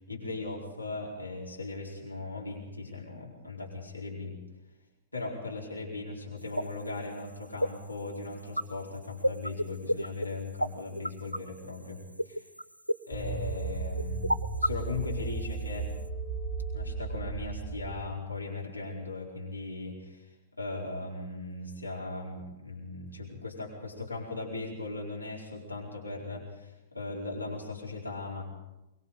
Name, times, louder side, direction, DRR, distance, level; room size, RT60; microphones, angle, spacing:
voice 1, 0.1-4.4 5.1-12.4 13.1-14.2 14.6-15.9 16.7-20.3 20.5-28.4, left 3 dB, 85° left, -3 dB, 4.7 m, -38 dB
sound 1, 6.4-16.1, equal, 90° right, 0.6 m, -33 dB
sound 2, 13.1-18.1, right 4 dB, 10° left, 6.7 m, -35 dB
23.5 x 21.5 x 5.1 m, 0.97 s
figure-of-eight pair, 100°, 0 cm